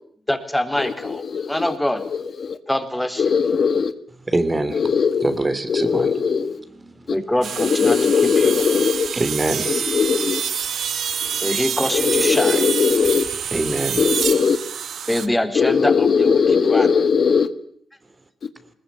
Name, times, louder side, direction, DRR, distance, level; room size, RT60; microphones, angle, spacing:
voice 1, 0.3-2.0 2.7-3.3 7.1-8.5 11.4-12.7 15.1-16.9, left 1 dB, 10° left, 3.9 m, -24 dB
voice 2, 1.0-2.6 3.2-3.9 4.7-5.3 5.7-6.6 7.6-9.1 9.6-10.4 11.2-11.3 11.9-13.2 14.0-14.6 15.5-17.5, left 6 dB, 60° left, 1.5 m, -19 dB
voice 3, 4.3-4.8 5.2-6.1 6.8-7.1 9.1-10.0 10.7-11.0 13.5-14.1, right 2 dB, 30° right, 3.4 m, -24 dB
sound 1, 7.4-15.3, right 8 dB, 70° right, 1.3 m, -27 dB
21.0 x 20.0 x 9.6 m
supercardioid pair, 45°, 0 cm